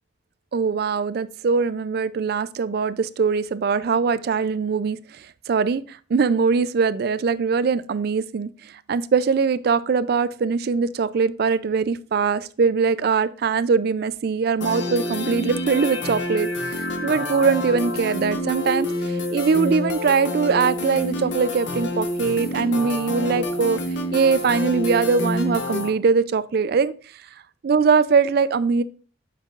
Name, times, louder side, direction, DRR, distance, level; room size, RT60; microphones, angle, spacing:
voice 1, 0.5-23.8 24.1-26.9 27.6-28.8, right 5 dB, 50° right, 16 dB, 0.3 m, -22 dB
sound 1, 14.6-25.9, left 1 dB, 65° left, 0.8 m, -28 dB
7.2 x 5.6 x 2.4 m, 0.38 s
head